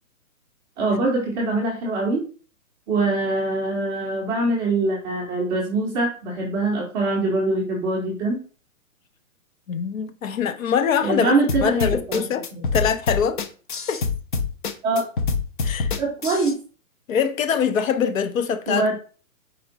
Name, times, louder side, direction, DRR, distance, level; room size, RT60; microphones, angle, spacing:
voice 1, 0.8-2.2 2.9-8.4 11.0-12.2 12.5-12.7 14.8-15.1 16.0-16.6 18.7-18.9, right 2 dB, 10° right, 0.6 m, -23 dB
voice 2, 9.7-11.3 11.6-12.5 12.7-13.4 13.9-14.0 15.6-15.9 17.1-18.9, left 7 dB, 65° left, 0.7 m, -23 dB
sound 1, 11.5-16.5, left 4 dB, 40° left, 0.5 m, -25 dB
4.4 x 2.3 x 3.8 m
hypercardioid pair, 145°, 43 cm